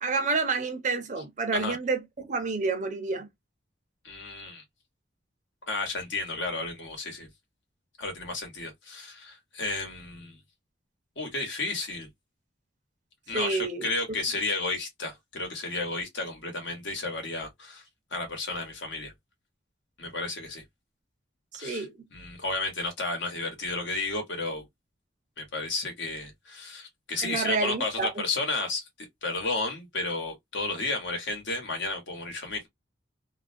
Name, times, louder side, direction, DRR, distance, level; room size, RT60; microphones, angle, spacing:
voice 1, 0.0-3.3 13.3-13.9 21.5-21.9 27.2-28.1, right 4 dB, 40° right, 0.5 m, -29 dB
voice 2, 4.0-4.6 5.7-7.3 8.0-10.4 11.2-12.1 13.3-17.8 18.1-19.1 20.0-20.6 21.6-21.9 22.1-24.6 25.4-32.7, left 3 dB, 70° left, 1.1 m, -32 dB
2.4 x 2.1 x 2.5 m
head